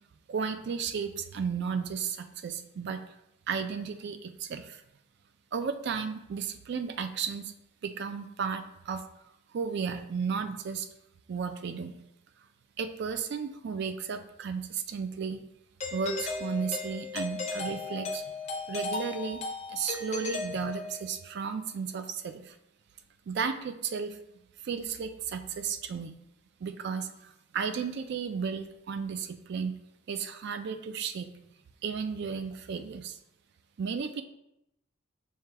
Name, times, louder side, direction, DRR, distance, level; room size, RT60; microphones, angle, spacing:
voice 1, 0.3-3.0 3.5-4.8 5.5-7.5 7.8-9.0 9.5-10.9 11.3-12.0 12.8-15.4 15.9-18.2 18.7-19.4 19.7-22.5 23.3-24.2 24.6-26.1 26.6-29.7 30.1-31.3 31.8-33.2 33.8-34.2, right 6 dB, 50° right, 9 dB, 0.3 m, -34 dB
Doorbell, 15.8-21.2, left 3 dB, 30° left, 0.5 m, -36 dB
5.7 x 2.2 x 3.3 m, 0.82 s
head